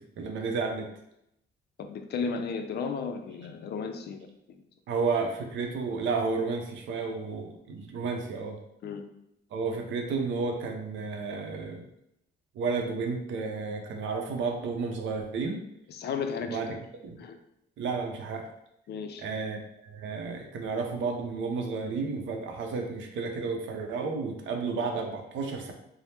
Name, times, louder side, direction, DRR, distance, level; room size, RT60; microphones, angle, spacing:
voice 1, 0.2-0.9 4.9-8.6 9.5-11.9 12.6-15.6 16.5-16.8 17.0-17.1 17.8-18.4 19.2-25.7, right 4 dB, 75° right, 3 dB, 0.6 m, -32 dB
voice 2, 1.8-4.6 8.8-9.1 15.9-16.8 17.2-17.4 18.9-19.2, left 5 dB, 55° left, 6 dB, 0.4 m, -34 dB
3.2 x 2.0 x 2.7 m, 0.79 s
cardioid pair, 90°, 20 cm